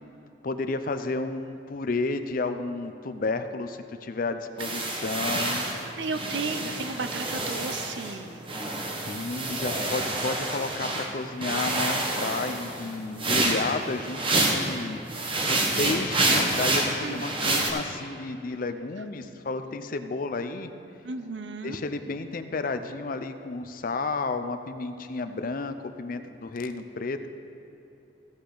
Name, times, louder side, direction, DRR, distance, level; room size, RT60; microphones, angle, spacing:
voice 1, 0.4-5.7 6.6-6.7 9.0-14.2 14.5-20.7 21.6-27.3, left 3 dB, 50° left, 9 dB, 0.5 m, -32 dB
sound 1, 4.6-8.2 8.5-11.1 11.4-14.7 15.1-17.7, right 2 dB, 30° right, 1.1 m, -28 dB
voice 2, 6.0-8.6 17.0-17.2 21.0-21.8, right 4 dB, 85° right, 9 dB, 0.6 m, -34 dB
15.5 x 8.3 x 3.9 m, 2.9 s
head